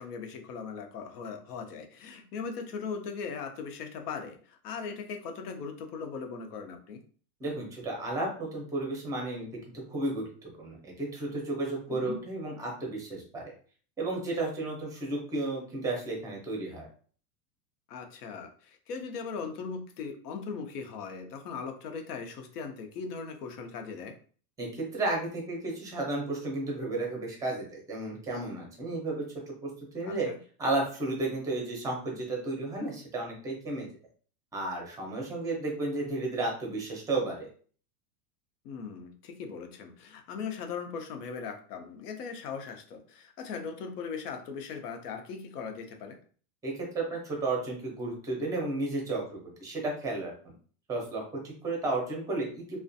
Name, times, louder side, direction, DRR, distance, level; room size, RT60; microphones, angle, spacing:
voice 1, 0.0-7.0 11.9-12.2 17.9-24.1 30.0-30.4 38.6-46.2, left 5 dB, 85° left, 5 dB, 0.8 m, -39 dB
voice 2, 7.4-9.5 9.7-10.3 10.6-13.5 14.0-16.9 24.6-30.3 30.6-33.9 34.5-37.5 46.6-50.5 50.9-52.8, right 2 dB, 10° right, 0 dB, 0.5 m, -33 dB
2.4 x 2.2 x 2.6 m, 0.43 s
supercardioid pair, 145°, 45 cm